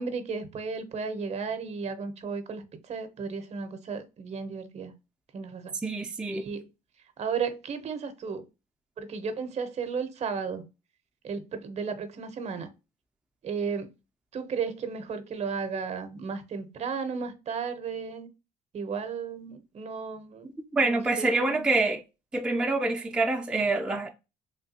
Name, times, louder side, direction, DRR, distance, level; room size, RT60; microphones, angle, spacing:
voice 1, 0.0-4.9 5.3-5.7 6.3-6.7 7.2-8.4 9.0-10.6 11.2-12.7 13.4-13.9 14.3-18.3 18.7-20.5 20.8-21.6, right 5 dB, 40° right, 0.6 m, -34 dB
voice 2, 5.8-6.5 20.7-22.0 22.3-24.1, right 2 dB, 5° right, 0.4 m, -26 dB
3.3 x 2.2 x 2.7 m
cardioid pair, 110°, 17 cm